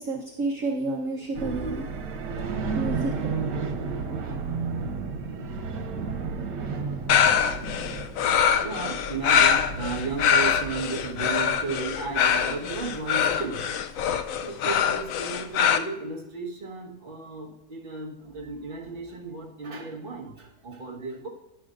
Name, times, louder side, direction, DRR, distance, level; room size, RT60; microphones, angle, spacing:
voice 1, 0.0-1.9 2.8-3.1 7.6-7.7, right 3 dB, 55° right, -1 dB, 1.3 m, -30 dB
sound 1, 1.3-13.8, right 4 dB, 90° right, 1.6 m, -33 dB
sound 2, 7.1-15.8, left 8 dB, 70° left, 0.8 m, -23 dB
voice 2, 8.5-13.7 14.4-21.3, right 4 dB, 35° right, -1 dB, 1.5 m, -34 dB
12.0 x 10.5 x 2.5 m, 0.91 s
omnidirectional pair, 1.8 m